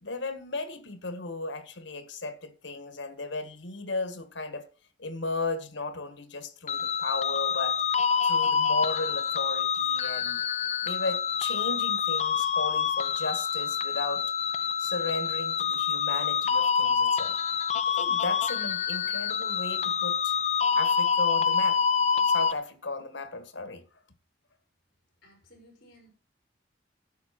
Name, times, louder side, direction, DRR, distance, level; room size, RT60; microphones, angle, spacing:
voice 1, 0.0-4.6 5.0-7.8 8.2-10.4 10.8-14.2 14.8-17.4 18.0-20.4 20.7-21.8 22.3-23.8, left 3 dB, 80° left, 1.8 m, -35 dB
sound 1, 6.7-22.5, left 7 dB, 35° left, 0.7 m, -27 dB
voice 2, 25.2-26.1, equal, 55° left, 5.8 m, -56 dB
11.5 x 7.6 x 6.0 m
head